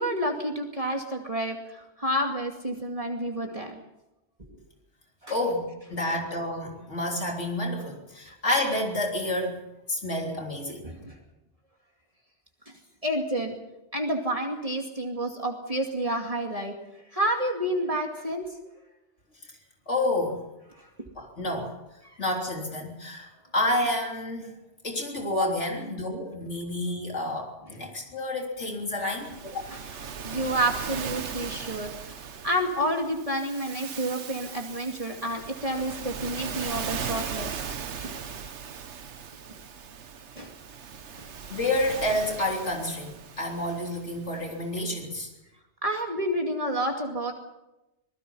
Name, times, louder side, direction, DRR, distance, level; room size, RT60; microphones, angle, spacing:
voice 1, 0.0-3.8 4.5-4.6 5.2-5.4 10.8-11.2 13.0-13.5 13.9-16.7 17.1-18.5 20.8-20.9 22.0-22.2 29.7-29.8 30.2-37.6 38.0-38.1 40.3-40.5 41.2-41.3 45.8-47.3, right 1 dB, 30° right, 2 dB, 2.5 m, -29 dB
voice 2, 5.3-9.6 9.9-10.9 19.4-19.5 19.9-20.4 21.2-21.7 22.2-24.5 24.8-29.4 41.5-45.3, left 1 dB, 90° left, 0 dB, 3.9 m, -29 dB
Waves surf, 29.1-44.6, right 6 dB, 80° right, 1.4 m, -38 dB
26.5 x 20.0 x 5.6 m, 0.94 s
omnidirectional pair, 1.2 m